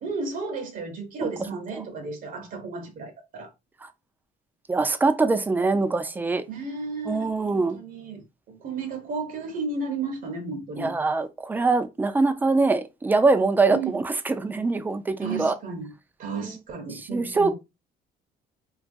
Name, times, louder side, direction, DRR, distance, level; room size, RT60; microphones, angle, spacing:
voice 1, 0.0-3.5 6.5-10.9 13.7-14.0 15.2-15.9 16.2-17.5, right 4 dB, 55° right, 0.7 m, -33 dB
voice 2, 4.7-6.4 7.1-7.8 10.8-15.5 17.1-17.5, right 3 dB, 10° right, 0.3 m, -23 dB
2.9 x 2.3 x 2.5 m
cardioid pair, 110°, 17 cm